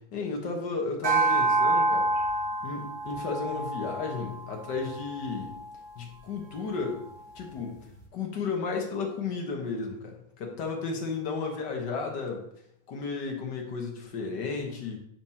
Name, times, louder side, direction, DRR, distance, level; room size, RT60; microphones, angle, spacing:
voice 1, 0.0-2.1 2.6-5.6 6.0-7.1 7.4-12.5 12.9-15.0, left 4 dB, 60° left, 1 dB, 1.7 m, -33 dB
sound 1, 1.0-5.6, right 2 dB, 50° right, 1.6 m, -28 dB
7.2 x 6.0 x 2.8 m, 0.73 s
omnidirectional pair, 2.1 m